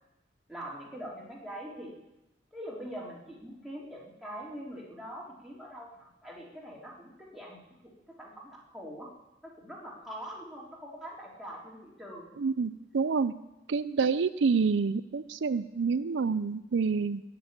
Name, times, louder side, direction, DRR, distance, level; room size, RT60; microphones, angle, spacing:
voice 1, 0.5-1.9 2.5-7.9 8.2-9.1 9.4-12.4, equal, ahead, -4 dB, 3.4 m, -43 dB
voice 2, 12.4-13.3 13.7-17.2, right 5 dB, 75° right, 14 dB, 0.5 m, -28 dB
20.0 x 6.8 x 8.9 m, 0.95 s
head